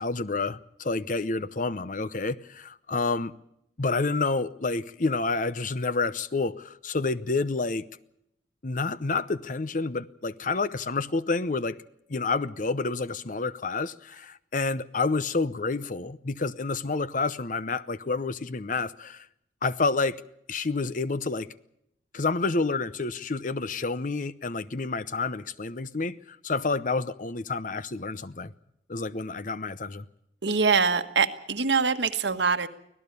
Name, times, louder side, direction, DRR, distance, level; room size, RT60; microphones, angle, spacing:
voice 1, 0.0-3.3 3.8-7.8 8.6-11.8 12.1-19.3 19.6-20.2 20.5-21.5 22.1-28.5 28.9-30.1, left 3 dB, 45° left, 0.8 m, -29 dB
voice 2, 30.4-32.7, right 5 dB, 85° right, 1.5 m, -24 dB
24.5 x 17.0 x 6.9 m
head